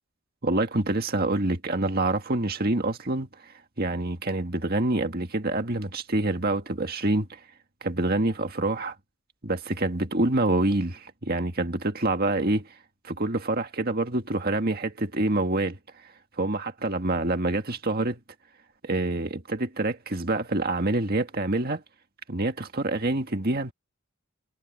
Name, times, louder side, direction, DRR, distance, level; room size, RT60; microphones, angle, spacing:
voice 1, 0.4-7.4 7.8-9.0 9.4-12.7 13.0-15.8 16.4-18.2 18.8-21.8 22.3-23.7, right 2 dB, 45° right, 1.9 m, -26 dB
head